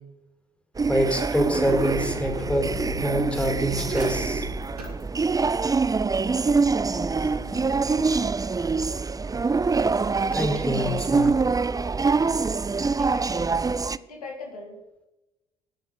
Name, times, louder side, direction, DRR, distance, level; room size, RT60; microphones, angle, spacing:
sound 1, 0.8-14.0, right 4 dB, 20° right, 0.6 m, -25 dB
voice 1, 0.9-2.7 3.0-4.5 10.3-11.3, equal, 5° left, 3 dB, 4.2 m, -25 dB
sound 2, 1.6-8.3, equal, 90° right, 3.4 m, -38 dB
voice 2, 6.7-7.9 12.9-13.5 14.0-14.8, left 3 dB, 85° left, 2 dB, 2.0 m, -41 dB
21.0 x 7.0 x 5.5 m, 0.97 s
figure-of-eight pair, 50°, 19 cm